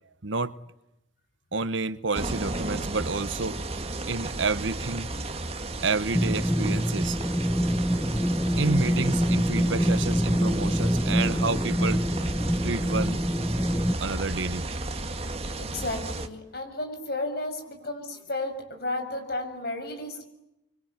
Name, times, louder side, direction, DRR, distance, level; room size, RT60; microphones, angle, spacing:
voice 1, 0.2-0.6 1.5-3.6 4.1-5.1 5.8-7.2 8.6-12.0 12.6-13.2 14.0-14.6, right 3 dB, 75° right, 1.1 m, -29 dB
sound 1, 2.1-16.3, right 2 dB, 30° right, 1.9 m, -33 dB
sound 2, 6.1-13.9, equal, 5° left, 1.1 m, -25 dB
voice 2, 15.6-20.2, left 2 dB, 50° left, 6.2 m, -33 dB
25.5 x 24.0 x 9.5 m
head